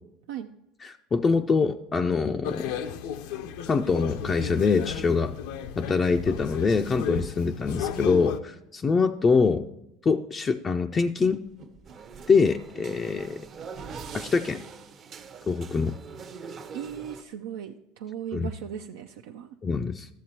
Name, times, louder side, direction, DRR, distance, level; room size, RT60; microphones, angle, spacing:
voice 1, 0.8-2.8 3.7-5.3 5.8-9.7 10.0-11.4 12.3-13.4 14.1-14.6 15.5-16.0 18.3-18.5 19.6-20.1, left 4 dB, 30° left, 5 dB, 0.4 m, -24 dB
sound 1, 2.4-8.4, left 8 dB, 75° left, 0.5 m, -34 dB
sound 2, 11.2-15.1, right 6 dB, 60° right, 1.1 m, -47 dB
sound 3, 11.9-17.2, right 5 dB, 40° right, 0.7 m, -43 dB
voice 2, 16.7-19.6, right 9 dB, 80° right, 4 dB, 0.4 m, -37 dB
12.5 x 7.2 x 2.9 m, 0.89 s
supercardioid pair, 100°, 0 cm